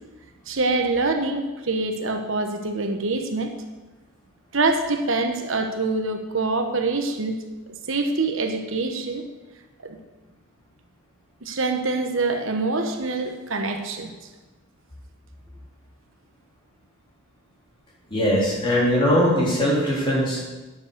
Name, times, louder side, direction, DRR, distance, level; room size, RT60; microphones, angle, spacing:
voice 1, 0.5-3.5 4.5-7.4 7.7-9.2 9.8-10.0 11.4-14.1, right 3 dB, 70° right, 5 dB, 1.1 m, -25 dB
voice 2, 18.1-20.4, equal, 25° left, -5 dB, 3.6 m, -20 dB
9.9 x 7.5 x 6.7 m, 1.2 s
head